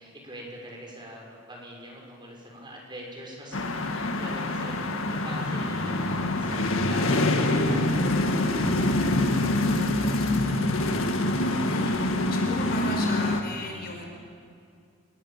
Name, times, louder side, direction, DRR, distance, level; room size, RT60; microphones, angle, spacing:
voice 1, 0.0-7.2 7.6-9.2 9.6-11.2, equal, 25° right, -1 dB, 6.1 m, -44 dB
sound 1, 3.5-13.4, left 2 dB, 80° left, 1.9 m, -25 dB
voice 2, 11.7-14.0, left 2 dB, 50° left, 1 dB, 4.9 m, -36 dB
27.0 x 20.5 x 7.4 m, 2.3 s
head